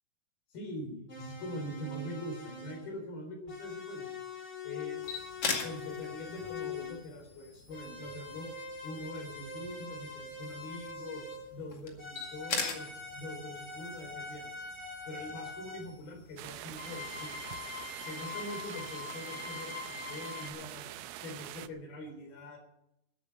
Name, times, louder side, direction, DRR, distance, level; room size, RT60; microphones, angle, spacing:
voice 1, 0.5-4.1 4.6-8.5 8.8-11.2 11.5-14.6 15.0-17.6 18.0-20.9 21.2-22.6, left 1 dB, 80° left, 2 dB, 5.7 m, -43 dB
sound 1, 1.1-2.9 3.5-7.0 7.7-11.6 12.0-15.9 16.7-20.5, left 4 dB, 20° left, 2.5 m, -43 dB
sound 2, 5.0-18.2, left 4 dB, 45° left, 2.7 m, -43 dB
sound 3, 16.4-21.7, right 14 dB, 80° right, 2.2 m, -45 dB
15.5 x 8.2 x 9.3 m, 0.82 s
omnidirectional pair, 4.2 m